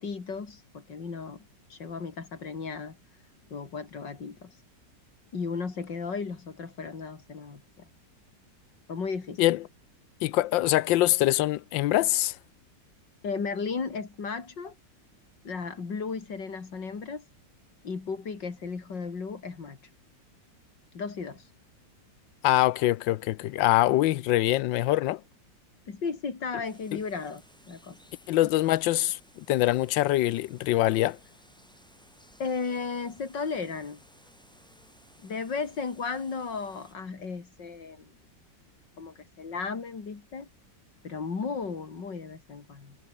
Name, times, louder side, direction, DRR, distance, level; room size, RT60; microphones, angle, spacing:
voice 1, 0.0-1.5 1.7-3.0 3.5-4.5 5.3-7.9 8.9-9.4 13.2-14.7 15.4-17.2 17.8-19.8 20.9-21.4 25.9-27.4 27.7-28.0 32.4-34.0 35.2-38.1 39.0-40.5 41.0-43.0, left 5 dB, 75° left, 3.6 m, -35 dB
voice 2, 10.2-12.4 22.4-25.2 26.9-27.0 28.3-31.2, left 15 dB, 90° left, 1.4 m, -24 dB
sound 1, 26.6-36.9, equal, ahead, 6.8 m, -59 dB
omnidirectional pair, 2.0 m